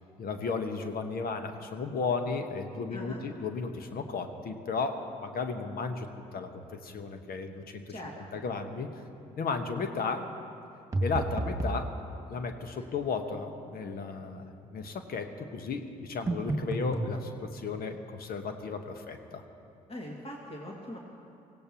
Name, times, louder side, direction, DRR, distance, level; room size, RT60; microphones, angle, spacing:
voice 1, 0.2-8.9 9.4-10.3 11.0-11.9 12.3-19.4, left 4 dB, 50° left, 7 dB, 1.4 m, -34 dB
voice 2, 2.9-3.2 7.9-8.4 19.9-21.0, left 1 dB, 30° left, -2 dB, 2.5 m, -41 dB
sound 1, 10.9-11.8 16.3-17.1, right 2 dB, 15° right, 2.2 m, -30 dB
25.0 x 16.5 x 3.1 m, 2.7 s
figure-of-eight pair, 50°, 20 cm